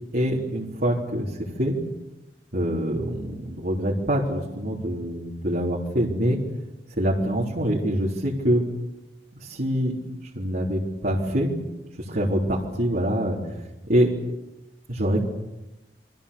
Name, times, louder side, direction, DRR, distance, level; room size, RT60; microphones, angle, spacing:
voice 1, 0.1-1.3 1.6-1.8 2.5-6.4 7.0-8.7 9.4-10.0 10.3-11.5 12.1-13.4 13.9-14.1 14.9-15.2, equal, 55° right, -4 dB, 3.8 m, -24 dB
29.0 x 24.5 x 7.0 m, 0.97 s
head